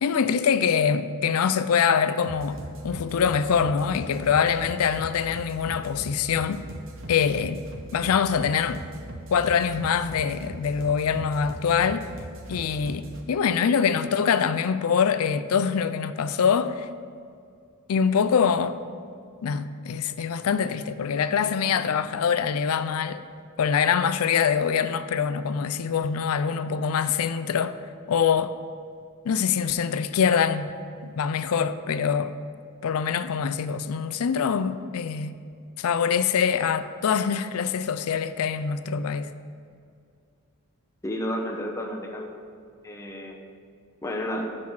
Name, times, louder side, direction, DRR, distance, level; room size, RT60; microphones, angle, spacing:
voice 1, 0.0-6.7 7.1-7.6 7.9-8.8 9.3-12.1 12.5-16.9 17.9-18.8 19.4-23.2 23.6-27.8 28.1-28.6 29.2-30.7 31.0-32.3 32.8-35.3 35.8-39.3, left 7 dB, 80° left, 0.4 m, -24 dB
sound 1, 2.2-13.2, right 1 dB, 65° right, 0.9 m, -40 dB
voice 2, 41.0-42.3 42.8-43.4 44.0-44.5, equal, 15° left, 0.8 m, -31 dB
6.5 x 6.2 x 5.5 m
head